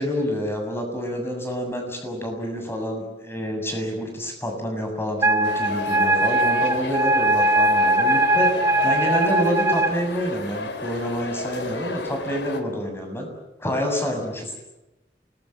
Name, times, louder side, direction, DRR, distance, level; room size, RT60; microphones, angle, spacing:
voice 1, 0.0-8.5 8.8-13.3 13.6-14.6, equal, 15° left, 4 dB, 7.3 m, -28 dB
Wind instrument woodwind instrument, 5.2-9.9, right 1 dB, 15° right, 1.4 m, -20 dB
sound 1, 5.4-12.6, left 2 dB, 85° left, 3.4 m, -34 dB
27.5 x 21.0 x 9.0 m, 0.95 s
head